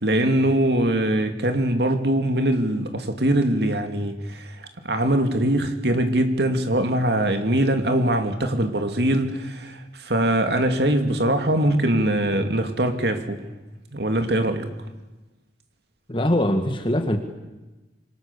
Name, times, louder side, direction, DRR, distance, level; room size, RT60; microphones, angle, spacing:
voice 1, 0.0-13.4 13.9-14.7, right 1 dB, 65° right, 2.7 m, -22 dB
voice 2, 16.1-17.2, left 1 dB, 30° left, 1.8 m, -22 dB
27.5 x 24.5 x 7.0 m
head